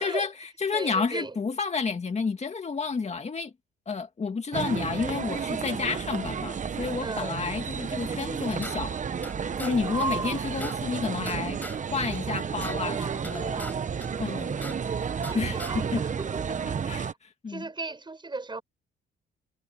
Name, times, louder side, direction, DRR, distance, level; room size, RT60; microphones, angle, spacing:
voice 1, 0.0-3.5 3.9-9.0 9.6-11.6 11.9-13.6 14.2-14.6 15.3-16.0 16.8-17.6, left 5 dB, 35° left, 2.1 m, -30 dB
voice 2, 0.7-1.4 7.0-7.4 9.8-10.5 12.9-13.8 14.1-14.8 15.3-16.4 17.5-18.6, right 3 dB, 25° right, 7.6 m, -36 dB
sound 1, 4.5-17.1, right 6 dB, 40° right, 1.1 m, -32 dB
sound 2, 8.1-9.3 9.6-9.7 10.0-10.1 10.3-11.8 12.1-13.7 14.0-15.3 15.6-15.7, left 1 dB, 10° left, 6.5 m, -41 dB
cardioid pair, 90°, 20 cm